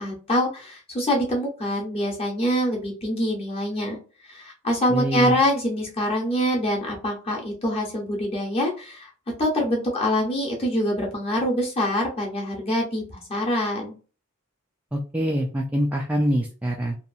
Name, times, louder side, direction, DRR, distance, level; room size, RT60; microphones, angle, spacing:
voice 1, 0.0-4.0 4.2-9.1 9.4-13.9, equal, 30° left, -2 dB, 0.8 m, -25 dB
voice 2, 4.9-5.3 14.9-17.0, equal, 5° right, -2 dB, 0.3 m, -24 dB
2.8 x 2.3 x 2.4 m, 0.36 s
head